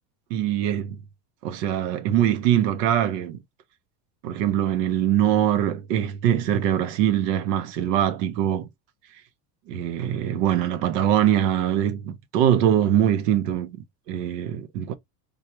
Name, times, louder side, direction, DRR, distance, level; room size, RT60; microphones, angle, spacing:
voice 1, 0.3-1.0 1.4-3.4 4.2-8.7 9.7-14.9, right 11 dB, 80° right, 0.7 m, -23 dB
3.4 x 2.3 x 2.8 m
supercardioid pair, 120°, 48 cm